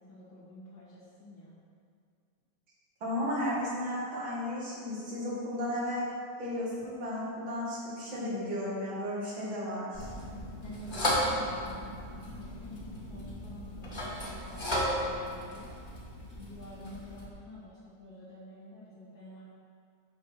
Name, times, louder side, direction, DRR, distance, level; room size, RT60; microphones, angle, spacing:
voice 1, 0.0-1.5 10.6-12.8 13.1-15.7 16.3-19.4, equal, 80° left, -11 dB, 2.7 m, -49 dB
voice 2, 3.0-6.0 6.4-10.1, left 1 dB, 80° right, -7 dB, 2.9 m, -34 dB
sound 1, 9.9-17.3, equal, 25° left, 1.6 m, -35 dB
9.5 x 4.8 x 5.9 m, 2.3 s
omnidirectional pair, 2.1 m